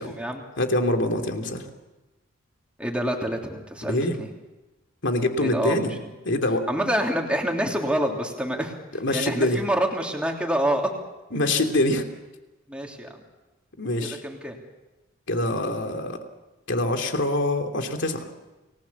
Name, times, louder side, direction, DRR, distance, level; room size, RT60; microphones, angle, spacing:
voice 1, 0.0-0.4 2.8-4.3 5.4-5.9 6.7-8.7 9.1-10.9 12.7-13.2 14.0-14.6, right 1 dB, 5° right, 0 dB, 3.2 m, -27 dB
voice 2, 0.6-1.7 3.8-4.2 5.0-5.9 6.2-6.6 9.0-9.6 11.3-12.0 13.8-14.2 15.3-16.2 16.7-18.3, left 1 dB, 60° left, 4 dB, 2.9 m, -24 dB
30.0 x 20.0 x 7.2 m, 1.1 s
head